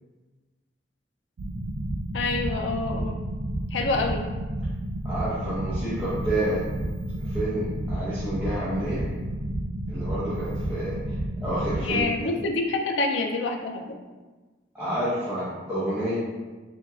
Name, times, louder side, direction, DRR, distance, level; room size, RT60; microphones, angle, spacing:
sound 1, 1.4-12.0, right 1 dB, 75° right, 0.4 m, -31 dB
voice 1, 2.1-3.2 3.7-4.3 11.8-14.0, left 3 dB, 75° left, 3 dB, 0.4 m, -27 dB
voice 2, 5.0-6.6 7.2-9.0 9.9-11.0 11.4-12.3 14.7-16.2, right 1 dB, 10° right, -12 dB, 0.9 m, -29 dB
4.5 x 2.9 x 2.4 m, 1.3 s
head